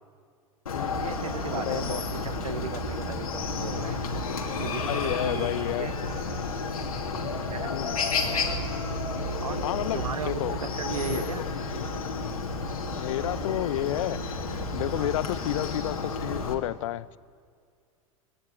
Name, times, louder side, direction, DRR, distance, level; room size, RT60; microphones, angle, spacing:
Chicken rooster, 0.7-16.5, left 3 dB, 85° left, 2.8 m, -31 dB
voice 1, 1.0-4.0 4.6-5.9 7.1-7.8 9.4-9.6 9.9-11.5 14.9-15.2, right 6 dB, 85° right, 10 dB, 1.5 m, -36 dB
voice 2, 1.5-2.0 4.8-6.0 7.7-8.0 9.6-10.5 11.1-11.5 12.9-14.2 14.7-17.1, left 14 dB, 65° left, 19 dB, 0.7 m, -31 dB
21.0 x 18.0 x 9.1 m, 2.2 s
hypercardioid pair, 90°, 18 cm